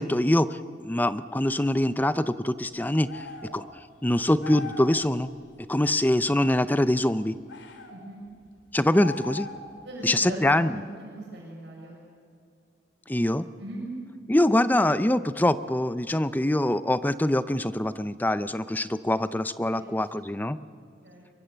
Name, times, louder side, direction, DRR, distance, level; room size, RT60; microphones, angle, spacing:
voice 1, 0.0-3.3 3.5-3.6 4.0-5.3 5.7-7.4 8.7-9.5 10.0-10.8 13.1-13.4 14.3-20.6, left 1 dB, 10° left, 13 dB, 0.5 m, -24 dB
sound 1, 3.1-3.6 4.4-4.9 7.5-8.0 9.0-9.7, left 4 dB, 75° left, 2.7 m, -39 dB
voice 2, 7.9-8.2 9.8-12.0 13.6-13.8 19.7-20.1 21.0-21.3, right 1 dB, 60° right, -2 dB, 6.6 m, -39 dB
23.5 x 23.0 x 8.0 m, 2.2 s
head